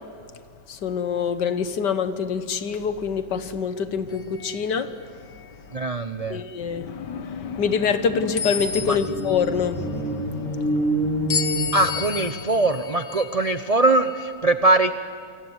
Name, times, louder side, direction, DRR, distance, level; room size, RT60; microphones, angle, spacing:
voice 1, 0.7-5.0 5.7-5.9 6.3-11.7, left 6 dB, 65° left, 11 dB, 1.8 m, -26 dB
sound 1, 4.1-4.7 5.3-5.5 8.4-9.4 11.3-14.3, left 6 dB, 45° left, 1.8 m, -32 dB
voice 2, 5.7-6.4 8.9-9.0 11.7-14.9, right 2 dB, 75° right, 10 dB, 0.3 m, -21 dB
sound 2, 7.4-12.5, right 1 dB, 5° left, 5.6 m, -28 dB
28.5 x 22.0 x 9.6 m, 2.2 s
omnidirectional pair, 2.0 m